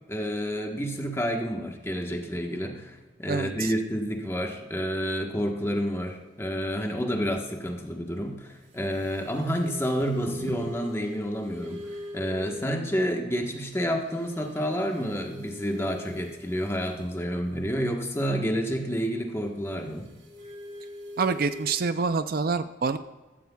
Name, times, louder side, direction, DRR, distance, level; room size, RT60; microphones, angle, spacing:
voice 1, 0.1-11.8 12.1-20.1, equal, 15° left, 2 dB, 1.3 m, -29 dB
voice 2, 3.3-3.7 21.2-23.0, right 4 dB, 50° right, 11 dB, 0.4 m, -26 dB
sound 1, 8.6-12.9 13.5-17.2 19.7-21.7, left 1 dB, 85° right, 3.1 m, -43 dB
15.0 x 13.5 x 2.3 m, 1.2 s
head